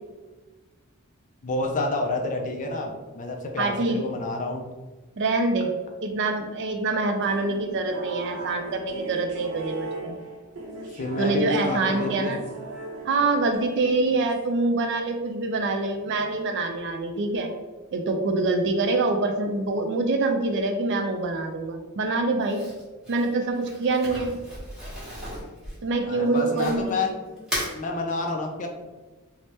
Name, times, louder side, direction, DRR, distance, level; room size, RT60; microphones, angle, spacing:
voice 1, 1.4-4.7 11.0-12.4 26.1-27.5 27.7-28.7, left 2 dB, 35° left, 2 dB, 0.4 m, -29 dB
voice 2, 3.6-4.0 5.2-5.7 6.0-10.1 11.2-12.4 13.1-17.5 17.9-22.6 23.1-24.3 25.8-26.9, right 3 dB, 55° right, 5 dB, 0.4 m, -25 dB
sound 1, 7.2-14.6, right 3 dB, 90° right, 0.7 m, -38 dB
Crumpling crinkling, 22.4-27.0 27.4-27.8, equal, 5° right, 1.0 m, -35 dB
3.3 x 2.0 x 2.7 m, 1.2 s
head